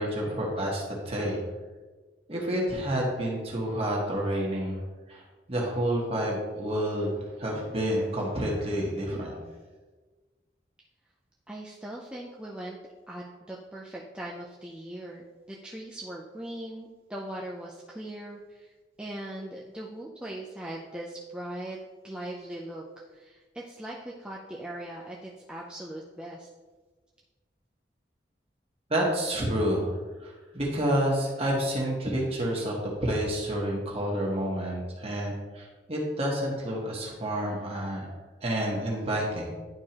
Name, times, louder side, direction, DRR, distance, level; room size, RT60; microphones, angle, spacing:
voice 1, 0.0-1.4 2.3-4.8 5.1-5.2 5.5-9.4 28.9-30.0 30.2-38.1 38.4-39.5, right 1 dB, 35° right, -2 dB, 1.5 m, -29 dB
voice 2, 11.5-12.8 13.1-18.7 19.0-21.8 22.0-22.8 23.1-26.5, right 1 dB, 5° right, -4 dB, 0.5 m, -40 dB
10.5 x 4.6 x 2.9 m, 1.3 s
head